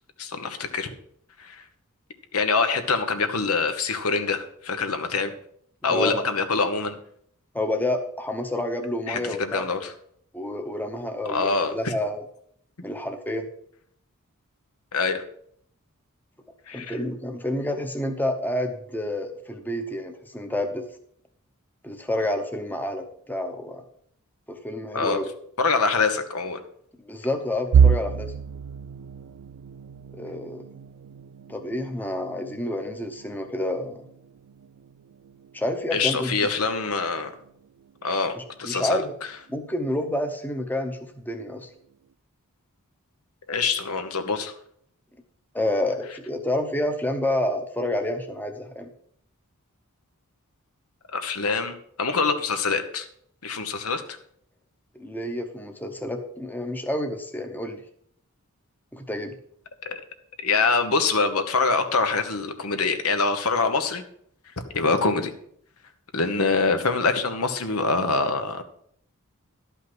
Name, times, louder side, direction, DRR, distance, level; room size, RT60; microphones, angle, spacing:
voice 1, 0.2-0.9 1.4-1.6 2.3-5.3 5.8-6.9 9.1-9.9 11.3-11.9 14.9-15.2 16.7-17.0 24.9-25.2 25.6-26.6 35.9-37.3 38.0-39.0 43.5-44.5 51.1-53.1 53.4-54.2 59.8-60.0 60.4-64.0 64.7-65.3 66.1-68.6, left 4 dB, 75° left, 7 dB, 1.2 m, -25 dB
voice 2, 7.5-9.7 10.3-12.2 12.8-13.5 16.7-20.8 21.8-23.8 24.5-25.2 27.1-28.3 30.1-30.6 31.5-34.0 35.5-36.5 38.4-39.1 39.5-41.7 45.5-48.9 54.9-57.8 58.9-59.3, left 1 dB, 10° left, 5 dB, 0.9 m, -29 dB
sound 1, 27.7-39.6 40.0-40.3 40.6-40.8 41.7-42.1, right 7 dB, 85° right, 0.3 m, -29 dB
11.5 x 5.7 x 6.1 m, 0.65 s
head